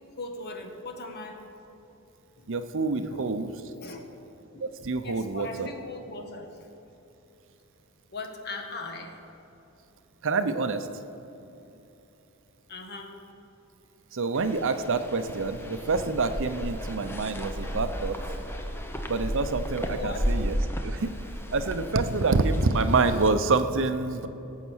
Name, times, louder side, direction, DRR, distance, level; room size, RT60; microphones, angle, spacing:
voice 1, 0.2-1.4 2.4-2.5 2.9-3.3 3.8-4.0 4.5-4.6 5.0-6.5 8.1-9.2 12.7-13.2 19.9-20.3, left 2 dB, 50° left, 3 dB, 1.4 m, -39 dB
voice 2, 2.5-3.5 4.6-5.7 10.2-10.9 14.1-18.2 19.1-20.6 20.8-21.1 21.5-24.3, right 3 dB, 60° right, 9 dB, 0.7 m, -27 dB
sound 1, 14.3-23.3, equal, 10° left, 0.9 m, -34 dB
17.5 x 7.3 x 6.3 m, 3.0 s
head